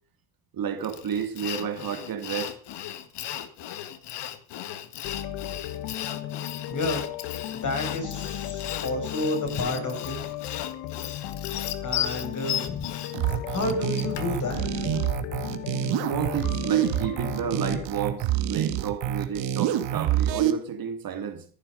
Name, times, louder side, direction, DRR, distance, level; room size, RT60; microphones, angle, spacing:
voice 1, 0.5-2.5 3.3-3.5 15.9-21.5, right 8 dB, 50° right, 2.6 m, -31 dB
Sawing, 0.8-14.4, left 11 dB, 60° left, 1.8 m, -35 dB
sound 1, 5.0-17.9, left 12 dB, 85° left, 1.5 m, -35 dB
voice 2, 6.7-7.0 7.5-10.2 11.8-12.9 13.3-14.9, left 2 dB, 40° left, 6.6 m, -31 dB
sound 2, 13.1-20.5, right 12 dB, 70° right, 2.0 m, -27 dB
14.5 x 11.5 x 5.3 m
supercardioid pair, 95°, 46 cm